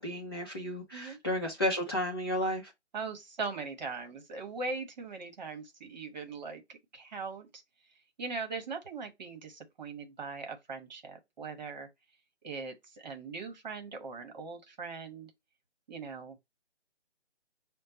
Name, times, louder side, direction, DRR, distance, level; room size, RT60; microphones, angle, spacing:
voice 1, 0.0-2.7, equal, 20° left, 0.6 m, -32 dB
voice 2, 2.9-7.6 8.2-11.9 12.4-15.3 15.9-16.4, right 4 dB, 40° right, 1.1 m, -40 dB
5.5 x 2.2 x 3.9 m
figure-of-eight pair, 155°, 35 cm